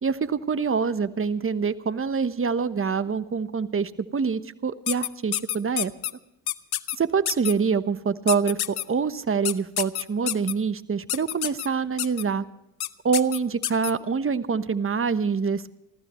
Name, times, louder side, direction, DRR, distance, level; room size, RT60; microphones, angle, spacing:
voice 1, 0.0-5.9 7.0-12.4 13.0-15.7, right 5 dB, 30° right, 13 dB, 1.1 m, -25 dB
sound 1, 4.9-6.1 6.5-6.9 7.2-7.5 8.3-8.8 9.4-10.5 11.1-11.7 12.0-12.2 12.8-12.9 13.1-13.9, left 13 dB, 60° left, 0.8 m, -27 dB
26.0 x 15.0 x 3.2 m, 0.86 s
hypercardioid pair, 50°, 42 cm